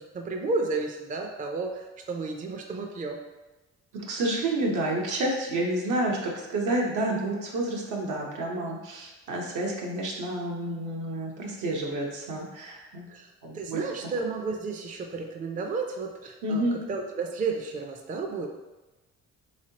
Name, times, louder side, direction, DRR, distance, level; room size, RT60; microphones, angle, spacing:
voice 1, 0.0-3.2 13.1-18.5, right 4 dB, 25° right, 2 dB, 0.4 m, -32 dB
voice 2, 3.9-13.1 13.4-13.8 16.4-16.8, right 1 dB, 80° right, -1 dB, 0.9 m, -29 dB
3.5 x 3.2 x 2.8 m, 1.1 s
cardioid pair, 90°, 30 cm